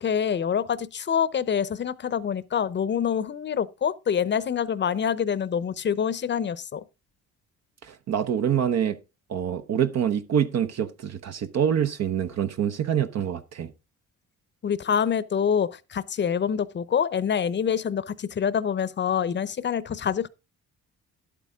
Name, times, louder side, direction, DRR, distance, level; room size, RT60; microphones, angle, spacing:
voice 1, 0.0-6.8 14.6-20.3, left 7 dB, 40° left, 0.7 m, -26 dB
voice 2, 7.8-9.0 9.3-13.7, right 9 dB, 60° right, 0.9 m, -26 dB
11.0 x 8.5 x 3.6 m
cardioid pair, 90°, 30 cm